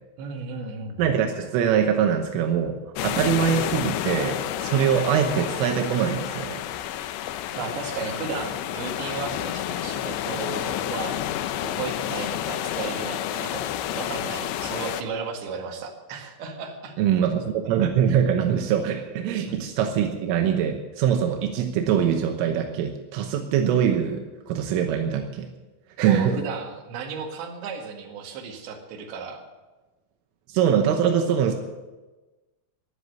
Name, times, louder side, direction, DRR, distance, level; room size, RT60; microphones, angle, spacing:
voice 1, 0.2-1.0 7.6-11.2 11.6-17.0 19.4-19.6 26.0-29.4, right 5 dB, 65° right, 1 dB, 3.9 m, -34 dB
voice 2, 1.0-2.8 3.0-6.6 17.0-25.5 26.0-26.3 30.5-31.5, right 8 dB, 85° right, 4 dB, 3.6 m, -23 dB
sound 1, 3.0-15.0, left 12 dB, 80° left, 2.6 m, -30 dB
15.5 x 11.0 x 6.8 m, 1.2 s
omnidirectional pair, 5.7 m